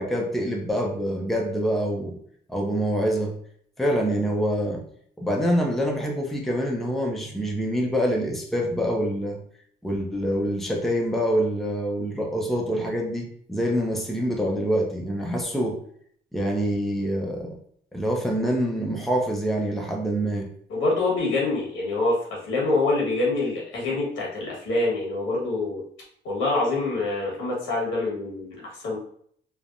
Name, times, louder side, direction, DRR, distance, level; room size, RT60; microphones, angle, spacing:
voice 1, 0.0-2.2 2.5-3.4 3.8-4.8 5.2-9.4 9.8-15.8 16.3-17.6 17.9-20.5, equal, ahead, 0 dB, 0.6 m, -25 dB
voice 2, 20.7-25.8 26.2-29.0, left 2 dB, 90° left, -3 dB, 1.4 m, -25 dB
3.4 x 2.1 x 2.5 m, 0.63 s
cardioid pair, 90°, 20 cm